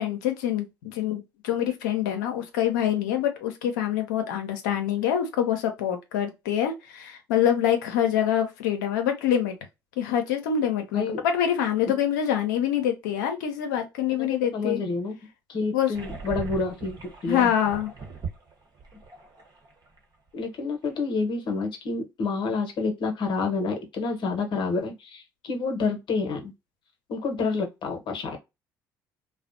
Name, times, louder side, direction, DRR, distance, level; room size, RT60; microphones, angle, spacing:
voice 1, 0.0-9.5 10.0-14.8 15.7-15.9 17.3-17.9, left 9 dB, 85° left, 0.6 m, -25 dB
voice 2, 10.9-11.2 14.2-15.2 15.5-17.5 20.3-26.5 27.1-28.4, left 4 dB, 55° left, 0.9 m, -29 dB
sound 1, 15.9-20.0 20.3-20.4 20.9-21.0, right 4 dB, 45° right, 0.9 m, -39 dB
2.4 x 2.1 x 2.5 m
hypercardioid pair, 60°, 10 cm